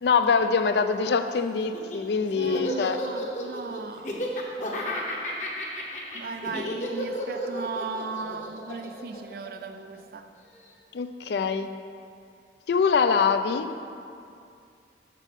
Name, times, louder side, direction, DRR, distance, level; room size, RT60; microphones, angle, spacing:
voice 1, 0.0-3.0 10.9-11.7 12.7-13.8, left 5 dB, 70° left, 9 dB, 0.4 m, -24 dB
Laughter, 1.6-10.0, left 1 dB, 45° left, 0.9 m, -33 dB
voice 2, 2.4-4.3 6.1-10.3, right 4 dB, 55° right, 8 dB, 0.4 m, -37 dB
6.2 x 5.3 x 5.7 m, 2.4 s
head